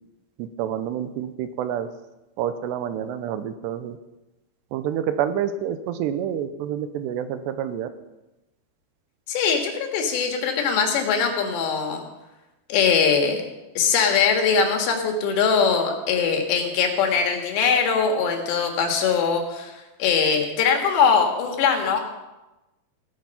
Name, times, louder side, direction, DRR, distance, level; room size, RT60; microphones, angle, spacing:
voice 1, 0.4-1.9 2.4-4.0 4.7-7.9, right 9 dB, 85° right, 11 dB, 2.8 m, -28 dB
voice 2, 9.3-12.0 12.7-13.4 13.8-19.7 20.0-22.0, left 6 dB, 75° left, 3 dB, 3.9 m, -21 dB
16.5 x 9.6 x 5.8 m, 1.0 s
omnidirectional pair, 5.1 m